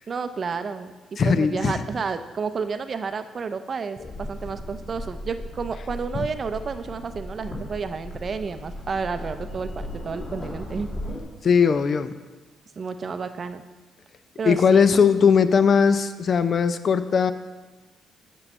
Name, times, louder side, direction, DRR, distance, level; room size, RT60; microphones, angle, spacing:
voice 1, 0.1-0.9 1.2-10.9 12.8-13.6 14.4-14.8, right 5 dB, 45° right, 10 dB, 0.5 m, -30 dB
voice 2, 1.2-1.8 4.0-4.1 6.1-6.3 11.4-12.1 14.4-17.3, left 6 dB, 50° left, 12 dB, 0.5 m, -19 dB
sound 1, 4.0-11.2, left 1 dB, 35° left, 3.0 m, -36 dB
8.4 x 5.5 x 5.4 m, 1.3 s
cardioid pair, 90°, 0 cm